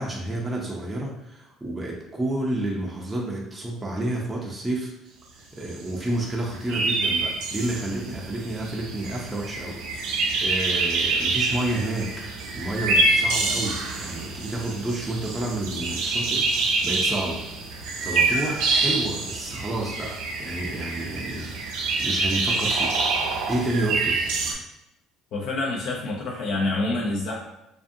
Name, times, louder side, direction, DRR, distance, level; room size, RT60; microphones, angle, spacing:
voice 1, 0.0-4.9 5.6-12.1 12.5-17.4 18.0-21.6 22.0-23.0 23.5-24.2, right 1 dB, 15° right, -3 dB, 0.5 m, -30 dB
sound 1, 5.7-5.8 6.0-6.1 6.3-24.5, right 3 dB, 80° right, 0.5 m, -26 dB
voice 2, 25.3-27.4, left 2 dB, 60° left, -3 dB, 0.5 m, -27 dB
2.5 x 2.4 x 2.6 m, 0.89 s
cardioid pair, 125°, 0 cm